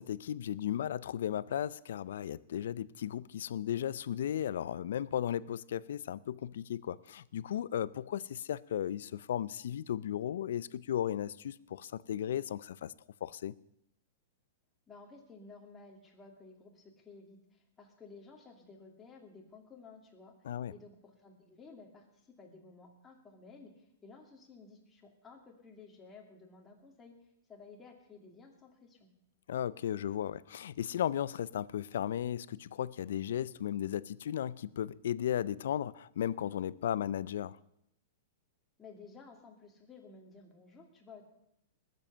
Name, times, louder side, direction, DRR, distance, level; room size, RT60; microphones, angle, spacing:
voice 1, 0.0-12.9 13.2-13.5 20.5-20.7 29.5-37.6, left 10 dB, 75° left, 0.5 m, -35 dB
voice 2, 14.9-20.3 20.7-27.1 27.5-29.1 38.8-41.3, left 4 dB, 15° left, 2.5 m, -54 dB
20.0 x 7.6 x 6.8 m
hypercardioid pair, 155°, 0 cm